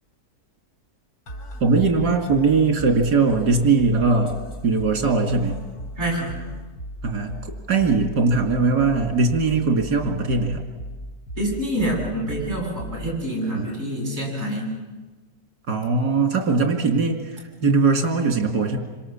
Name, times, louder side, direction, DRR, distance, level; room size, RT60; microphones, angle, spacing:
sound 1, 1.3-13.3, right 1 dB, 70° left, 2.7 m, -37 dB
voice 1, 1.6-4.3 4.6-5.6 7.0-10.6 13.5-13.7 15.7-18.8, right 4 dB, 80° right, 3 dB, 3.0 m, -20 dB
voice 2, 6.0-6.4 11.4-14.8, right 1 dB, 40° right, -1 dB, 8.2 m, -26 dB
27.0 x 25.5 x 7.3 m, 1.3 s
omnidirectional pair, 1.7 m